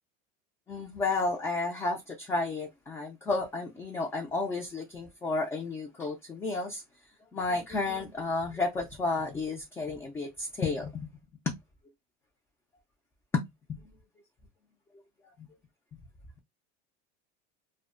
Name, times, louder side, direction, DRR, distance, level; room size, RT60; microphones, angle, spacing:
voice 1, 0.7-6.8 7.3-11.1 11.5-11.6 13.3-13.8 15.4-15.5, left 3 dB, 10° left, 0.3 m, -32 dB
2.5 x 2.1 x 2.4 m
supercardioid pair, 150°, 21 cm